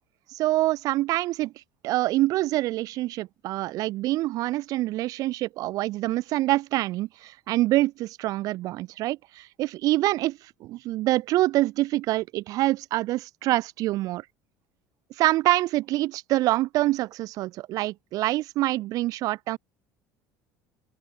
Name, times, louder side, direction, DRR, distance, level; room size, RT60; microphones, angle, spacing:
voice 1, 0.3-1.5 1.8-14.3 15.2-19.6, right 17 dB, 65° right, 3.8 m, -26 dB
open air
supercardioid pair, 110°, 7 cm